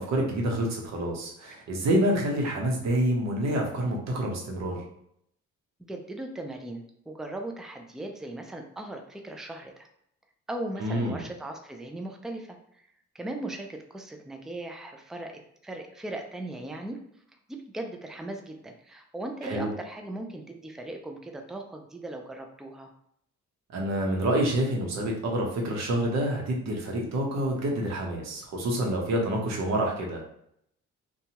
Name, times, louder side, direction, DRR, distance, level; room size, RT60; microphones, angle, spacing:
voice 1, 0.0-4.8 10.8-11.3 19.4-19.7 23.7-30.2, right 1 dB, 60° right, -1 dB, 0.9 m, -27 dB
voice 2, 5.8-9.9 10.5-12.9 13.1-17.0 17.5-22.9, right 1 dB, ahead, 4 dB, 0.3 m, -38 dB
2.7 x 2.3 x 2.8 m, 0.73 s
cardioid pair, 90°, 30 cm